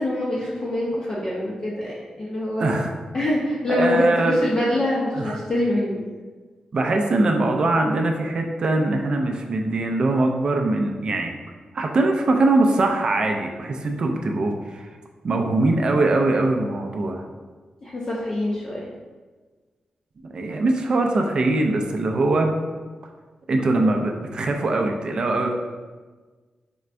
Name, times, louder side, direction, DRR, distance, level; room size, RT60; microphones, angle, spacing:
voice 1, 0.0-2.7 3.1-6.0 17.8-18.8, left 1 dB, 30° left, -6 dB, 0.5 m, -25 dB
voice 2, 2.6-2.9 3.7-4.4 5.1-5.4 6.7-11.4 11.7-14.9 15.2-17.2 20.3-22.5 23.5-25.5, right 2 dB, 40° right, 3 dB, 0.4 m, -22 dB
4.4 x 3.2 x 2.5 m, 1.4 s
wide cardioid pair, 175°, 2 cm